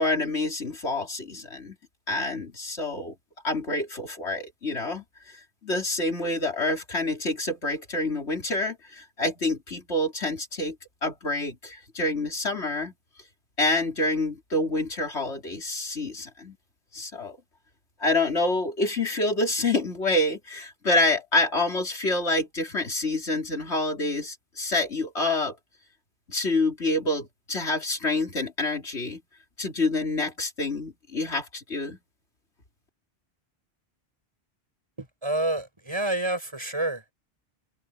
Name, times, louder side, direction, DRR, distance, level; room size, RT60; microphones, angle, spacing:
voice 1, 0.0-1.8 2.1-3.1 3.4-10.8 11.0-12.9 13.6-16.6 16.9-17.4 18.0-25.6 26.3-29.2 29.6-32.0, left 2 dB, 90° left, 3.7 m, -27 dB
voice 2, 35.0-37.1, right 1 dB, 25° right, 6.3 m, -28 dB
omnidirectional pair, 1.1 m